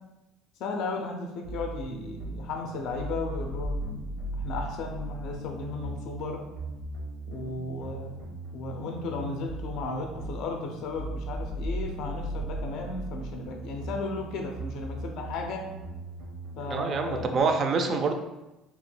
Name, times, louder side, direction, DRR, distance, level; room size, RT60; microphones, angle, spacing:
voice 1, 0.6-6.5 7.3-15.7 16.6-17.4, left 3 dB, 60° left, 2 dB, 0.4 m, -35 dB
sound 1, 1.4-17.4, right 2 dB, 80° right, 0.8 m, -37 dB
voice 2, 16.7-18.2, right 4 dB, 40° right, 5 dB, 0.3 m, -26 dB
2.8 x 2.2 x 3.1 m, 0.99 s
cardioid pair, 125°, 0 cm